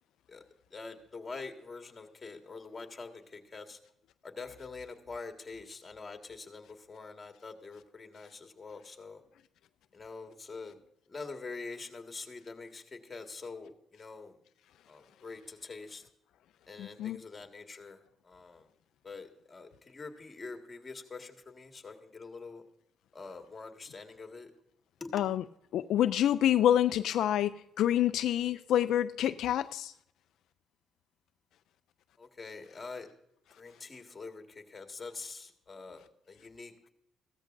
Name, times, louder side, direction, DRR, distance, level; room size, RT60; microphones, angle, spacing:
voice 1, 0.7-3.8 4.2-9.2 9.9-10.8 11.1-14.4 14.9-16.0 16.7-18.7 19.0-22.6 23.1-24.5 25.0-25.1 32.2-33.1 33.6-36.7, left 4 dB, 25° left, 4 dB, 1.8 m, -45 dB
voice 2, 16.8-17.2 25.1-25.4 25.7-29.9, left 11 dB, 80° left, 11 dB, 0.3 m, -27 dB
15.5 x 13.5 x 2.6 m, 0.76 s
cardioid pair, 90°, 0 cm